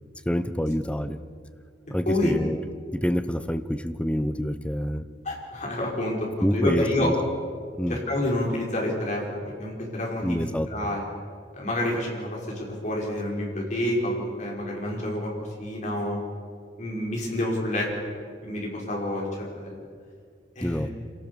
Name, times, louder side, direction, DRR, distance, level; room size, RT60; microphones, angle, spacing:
voice 1, 0.2-1.2 1.9-2.6 2.9-5.1 6.4-7.1 7.7-8.0 10.2-10.7 20.6-21.1, equal, 5° left, 11 dB, 0.8 m, -27 dB
voice 2, 5.2-7.1 7.9-10.4 10.7-11.0 11.5-15.3 15.6-16.2 16.8-17.9 18.4-19.8 20.6-20.9, left 1 dB, 40° left, -2 dB, 5.2 m, -28 dB
27.0 x 18.0 x 7.0 m, 2.1 s
head